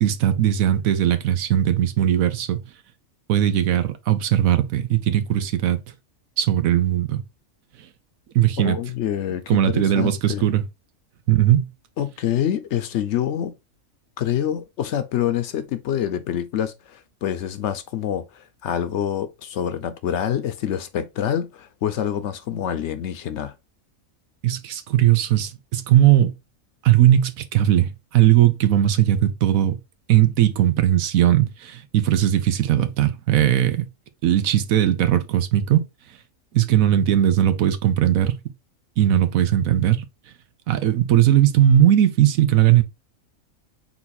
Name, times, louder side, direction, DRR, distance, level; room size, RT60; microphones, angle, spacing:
voice 1, 0.0-2.6 3.3-5.8 6.4-7.2 8.3-8.8 9.5-10.6 11.3-11.7 24.4-26.3 26.8-29.8 30.1-33.9 34.2-35.8 36.5-38.4 39.0-40.0 40.7-42.8, right 11 dB, 85° right, 1.1 m, -18 dB
voice 2, 8.6-10.5 12.0-13.5 14.2-23.5, left 10 dB, 65° left, 0.8 m, -26 dB
4.0 x 2.8 x 4.1 m
omnidirectional pair, 1.4 m